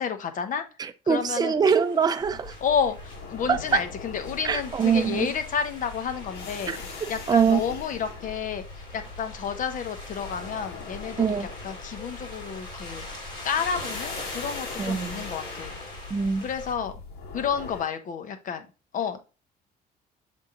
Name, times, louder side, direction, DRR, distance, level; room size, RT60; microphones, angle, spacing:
voice 1, 0.0-0.6 1.1-1.5 2.6-6.7 7.1-13.0 13.4-15.7 16.4-17.0 17.3-18.7 18.9-19.2, left 7 dB, 50° left, 1.2 m, -30 dB
voice 2, 0.8-2.5 3.5-3.8 4.4-5.3 6.7-6.8 7.3-7.6 11.2-11.5 14.8-15.2 16.1-16.4, right 6 dB, 25° right, 0.5 m, -23 dB
sound 1, 1.6-16.7, left 2 dB, 25° left, 3.7 m, -42 dB
sound 2, 2.2-17.8, left 4 dB, 70° left, 2.1 m, -41 dB
7.2 x 3.7 x 3.8 m
cardioid pair, 110°, 17 cm